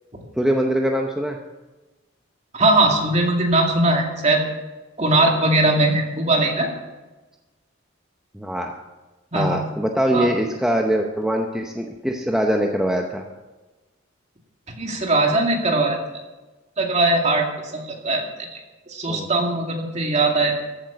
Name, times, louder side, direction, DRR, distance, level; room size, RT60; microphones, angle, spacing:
voice 1, 0.4-1.4 8.3-8.7 9.3-13.2 19.1-19.3, equal, 5° right, 1 dB, 0.7 m, -22 dB
voice 2, 2.5-4.4 5.0-6.7 9.3-9.6 10.1-10.3 14.7-16.0 16.8-17.5 17.7-18.2 18.5-18.6 18.9-20.5, right 2 dB, 35° right, 1 dB, 2.2 m, -20 dB
14.5 x 9.0 x 5.8 m, 1.2 s
head